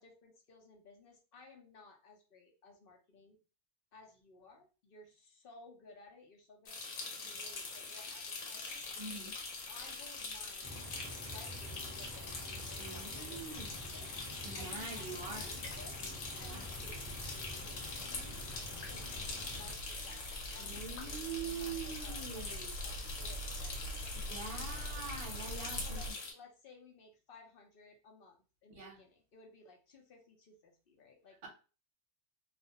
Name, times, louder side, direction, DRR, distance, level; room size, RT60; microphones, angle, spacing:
voice 1, 0.0-3.4 3.9-8.9 9.7-10.7 11.2-12.3 12.7-14.1 14.4-16.0 16.4-23.8 24.4-24.9 25.8-31.5, left 3 dB, 55° left, 1 dB, 0.7 m, -58 dB
sound 1, 6.7-26.3, left 4 dB, 85° left, 1.1 m, -44 dB
sound 2, 8.8-26.1, right 1 dB, 80° right, 1.0 m, -48 dB
voice 2, 9.0-9.3 12.8-13.7 14.2-15.6 16.4-16.7 20.5-22.7 24.2-26.0 28.7-29.0, right 5 dB, 45° right, 0 dB, 0.9 m, -44 dB
sound 3, 10.6-19.7, equal, 15° left, 0.7 m, -48 dB
2.4 x 2.2 x 2.8 m, 0.33 s
omnidirectional pair, 1.4 m